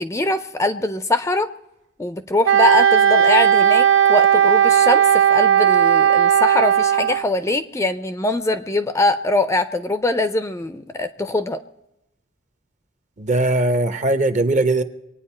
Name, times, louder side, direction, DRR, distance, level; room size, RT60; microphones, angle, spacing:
voice 1, 0.0-1.5 2.0-11.6, left 2 dB, 15° left, 11 dB, 0.5 m, -22 dB
Wind instrument woodwind instrument, 2.4-7.3, right 9 dB, 75° right, 0.7 m, -15 dB
voice 2, 13.2-14.8, right 2 dB, 40° right, 10 dB, 0.9 m, -19 dB
24.0 x 9.2 x 4.4 m, 0.88 s
head